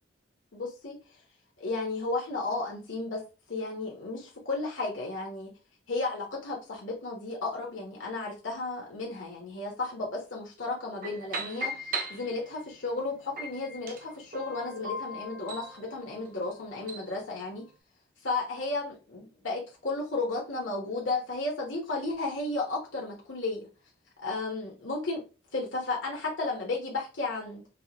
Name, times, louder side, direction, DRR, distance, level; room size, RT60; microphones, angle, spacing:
voice 1, 0.5-1.2 1.6-3.2 3.5-5.5 5.9-17.6 18.2-23.6 24.2-25.2 25.5-27.7, left 3 dB, 85° left, -2 dB, 1.0 m, -33 dB
sound 1, 11.0-12.7 13.4-17.1, right 1 dB, 45° right, 0.6 m, -38 dB
4.5 x 2.1 x 2.8 m, 0.32 s
head